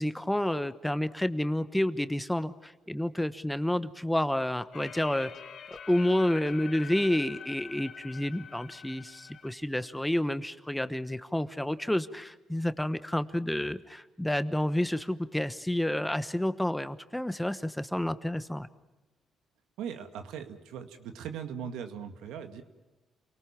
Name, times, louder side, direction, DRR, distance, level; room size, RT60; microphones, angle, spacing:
voice 1, 0.0-5.3 5.9-18.7, left 1 dB, 5° left, 12 dB, 1.1 m, -29 dB
sound 1, 4.7-9.5, left 7 dB, 60° left, 2.5 m, -45 dB
voice 2, 19.8-22.6, right 8 dB, 90° right, 7 dB, 2.0 m, -39 dB
29.0 x 19.0 x 7.3 m, 1.2 s
cardioid pair, 90°, 0 cm